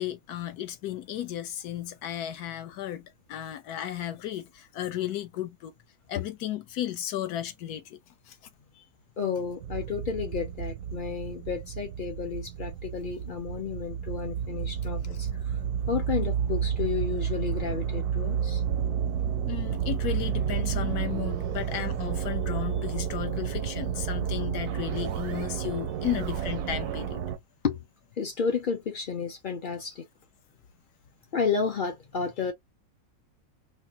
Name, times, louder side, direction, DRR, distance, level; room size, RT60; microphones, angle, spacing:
voice 1, 0.0-5.7 6.1-8.0 8.3-8.4 8.8-8.9 19.4-27.2, left 12 dB, 80° left, 1.2 m, -34 dB
voice 2, 9.2-15.3 15.9-18.6 27.6-27.8 28.2-30.0 31.3-32.5, left 6 dB, 60° left, 0.5 m, -31 dB
sound 1, 9.6-27.4, right 8 dB, 85° right, 1.1 m, -31 dB
sound 2, 15.9-17.3 18.7-22.9 24.7-25.6 25.9-27.1, right 10 dB, 70° right, 0.7 m, -41 dB
4.3 x 2.2 x 2.7 m
omnidirectional pair, 1.7 m